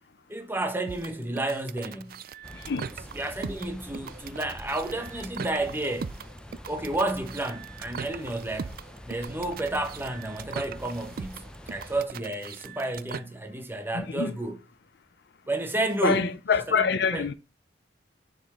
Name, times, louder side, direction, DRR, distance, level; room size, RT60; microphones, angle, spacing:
voice 1, 0.3-2.1 3.1-6.1 6.7-8.7 9.1-14.6 15.5-16.3 16.7-17.3, right 2 dB, 15° right, 1.1 m, -31 dB
sound 1, 0.9-13.2, right 6 dB, 55° right, 0.4 m, -40 dB
sound 2, 2.4-12.0, equal, 5° left, 0.6 m, -45 dB
voice 2, 13.9-14.4 16.0-17.3, left 5 dB, 65° left, 0.5 m, -25 dB
6.4 x 5.0 x 3.6 m
head